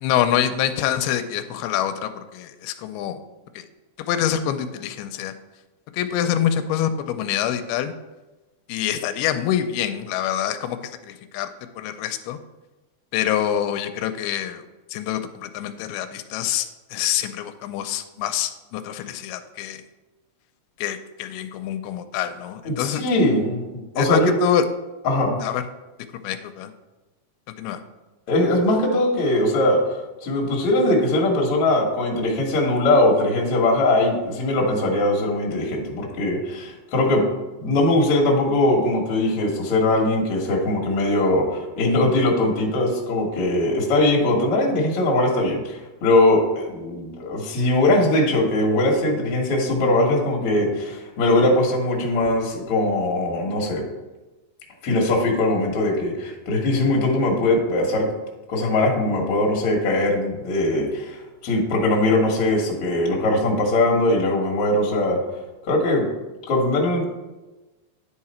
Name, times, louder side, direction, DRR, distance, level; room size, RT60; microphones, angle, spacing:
voice 1, 0.0-3.2 3.6-3.7 4.0-5.3 5.9-7.9 8.7-10.8 11.0-11.5 11.8-12.4 13.1-14.6 14.9-19.8 20.8-23.0 24.0-24.6 25.4-25.6 26.1-26.7 27.6-27.8, left 10 dB, 90° left, 9 dB, 2.5 m, -25 dB
voice 2, 22.7-23.6 24.0-24.3 25.1-25.4 28.3-37.3 37.6-53.8 54.8-58.1 58.5-61.2 61.4-65.2 65.7-66.0 66.5-67.0, left 1 dB, 50° left, -1 dB, 1.8 m, -21 dB
9.8 x 4.8 x 4.3 m, 1.1 s
omnidirectional pair, 4.4 m